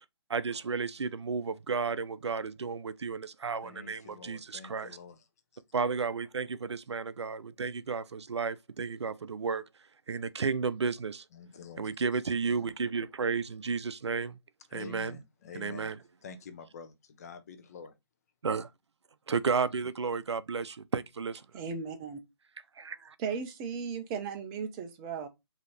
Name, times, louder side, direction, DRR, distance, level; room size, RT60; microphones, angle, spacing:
voice 1, 0.3-5.0 5.7-9.6 10.1-11.2 11.8-14.3 14.7-15.2 15.5-16.0 18.4-18.7 19.3-21.4 22.8-23.1, right 5 dB, 80° right, 0.5 m, -32 dB
voice 2, 3.6-5.2 5.5-5.6 11.3-12.0 14.7-15.9 16.2-17.9, left 5 dB, 35° left, 0.7 m, -47 dB
voice 3, 21.5-22.2 23.2-25.3, right 6 dB, 15° right, 0.5 m, -36 dB
4.9 x 2.8 x 3.1 m
figure-of-eight pair, 150°, 14 cm